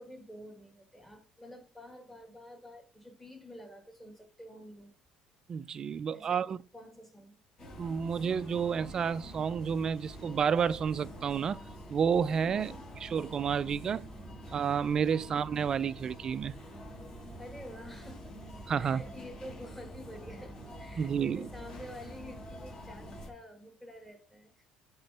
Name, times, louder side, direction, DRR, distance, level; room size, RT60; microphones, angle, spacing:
voice 1, 0.0-4.9 6.1-7.4 12.4-12.8 14.3-14.4 15.1-15.4 17.4-18.3 18.8-24.6, left 1 dB, 5° left, 1.7 m, -49 dB
voice 2, 5.5-6.6 7.8-11.6 11.9-12.7 13.0-14.0 14.5-16.5 18.7-19.0 21.0-21.4, right 7 dB, 30° right, 0.3 m, -30 dB
sound 1, 7.6-23.3, equal, 35° left, 2.6 m, -47 dB
8.2 x 3.7 x 3.4 m
cardioid pair, 145°, 2 cm